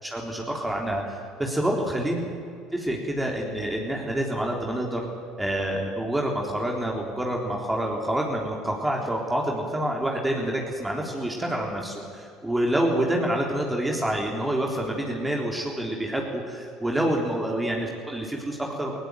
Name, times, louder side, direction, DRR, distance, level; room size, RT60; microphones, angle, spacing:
voice 1, 0.0-2.2 2.7-5.1 5.4-19.0, right 1 dB, 10° right, 0 dB, 3.7 m, -27 dB
19.0 x 17.5 x 9.3 m, 2.4 s
hypercardioid pair, 70°, 0 cm